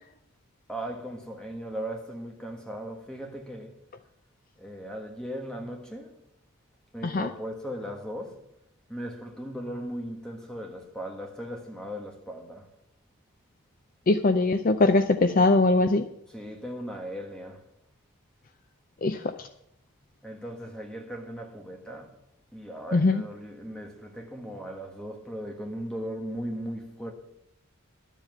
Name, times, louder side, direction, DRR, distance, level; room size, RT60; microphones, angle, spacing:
voice 1, 0.7-3.7 4.6-6.2 6.9-8.4 8.9-12.7 16.3-17.6 20.2-22.1 22.5-27.1, equal, 5° left, 1.5 m, -37 dB
voice 2, 14.1-16.0 19.0-19.2 22.9-23.2, left 2 dB, 40° left, 0.4 m, -21 dB
12.0 x 7.4 x 7.6 m
head